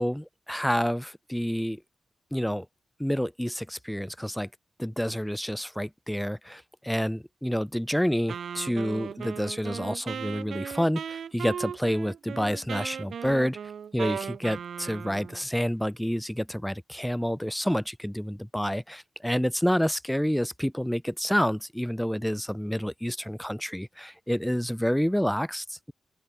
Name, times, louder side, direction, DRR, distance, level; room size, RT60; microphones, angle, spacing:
voice 1, 0.0-1.8 2.3-2.7 3.0-4.5 4.8-13.6 13.9-25.9, equal, 5° left, 0.5 m, -28 dB
Wind instrument woodwind instrument, 8.3-15.4, right 7 dB, 75° right, 2.3 m, -37 dB
open air
supercardioid pair, 50°, 0 cm